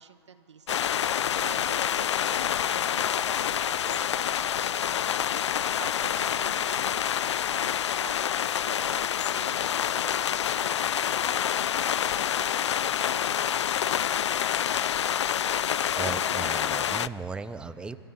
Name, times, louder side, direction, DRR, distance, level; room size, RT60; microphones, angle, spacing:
voice 1, 0.0-14.4 15.2-15.4, right 6 dB, 80° right, 9 dB, 1.2 m, -48 dB
sound 1, 0.7-17.1, left 9 dB, 80° left, 0.4 m, -27 dB
voice 2, 16.0-18.0, right 4 dB, 5° right, 14 dB, 0.5 m, -36 dB
23.5 x 14.5 x 9.0 m, 2.9 s
hypercardioid pair, 135°, 15 cm